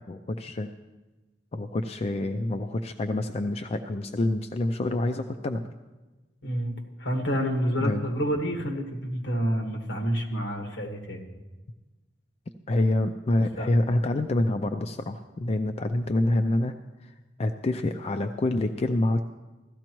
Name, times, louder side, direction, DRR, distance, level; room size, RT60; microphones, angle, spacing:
voice 1, 0.1-0.7 1.5-5.7 7.8-8.0 12.7-16.7 17.0-17.1 17.4-19.2, left 1 dB, 35° left, 7 dB, 0.4 m, -27 dB
voice 2, 6.4-11.2 13.6-14.0, equal, 70° left, 2 dB, 1.7 m, -29 dB
16.5 x 13.0 x 3.0 m, 1.2 s
head